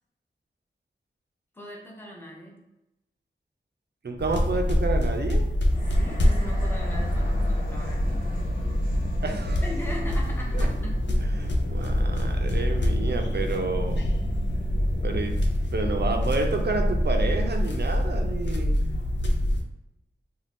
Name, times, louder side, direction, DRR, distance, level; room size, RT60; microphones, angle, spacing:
voice 1, 1.5-2.6 5.9-8.3 9.6-11.2, left 1 dB, 10° left, -2 dB, 0.7 m, -39 dB
voice 2, 4.0-5.5 9.2-9.6 10.5-10.7 11.4-14.0 15.0-15.4 15.7-19.0, right 3 dB, 60° right, 3 dB, 0.5 m, -30 dB
sound 1, 4.2-19.6, equal, 70° left, 0.5 m, -25 dB
sound 2, 5.7-17.0, left 1 dB, 45° left, 1.1 m, -42 dB
2.6 x 2.2 x 3.4 m, 0.88 s
wide cardioid pair, 45°, 19 cm